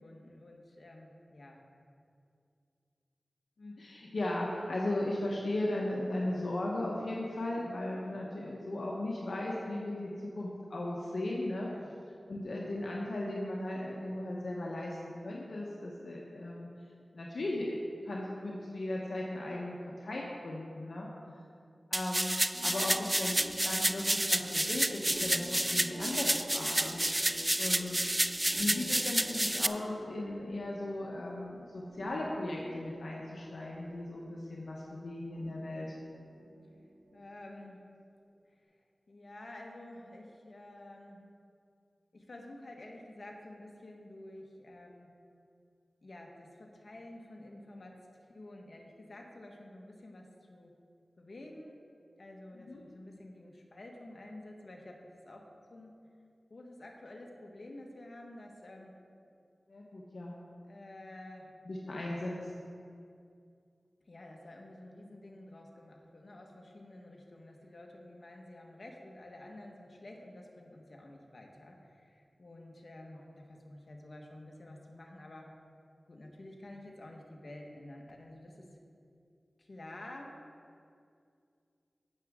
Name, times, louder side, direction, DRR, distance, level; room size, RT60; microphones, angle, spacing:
voice 1, 0.0-1.6 11.6-11.9 37.1-37.9 38.5-38.7 39.1-41.3 42.1-45.1 46.0-50.7 51.2-51.8 52.2-55.9 56.5-59.0 60.6-61.5 64.1-75.5 76.1-78.8 79.6-80.4, left 1 dB, 60° left, 0 dB, 1.4 m, -50 dB
voice 2, 3.6-11.7 12.3-16.7 17.1-17.8 18.0-21.1 21.9-22.3 22.6-27.0 27.6-28.0 28.5-35.9 52.5-52.8 59.7-60.3 61.6-62.5, left 1 dB, 80° left, -3 dB, 1.1 m, -37 dB
sound 1, 21.9-29.7, right 1 dB, 15° right, 0.3 m, -30 dB
sound 2, 22.5-37.6, right 1 dB, 90° right, 2.5 m, -50 dB
16.0 x 6.2 x 3.7 m, 2.4 s
wide cardioid pair, 55°, 0 cm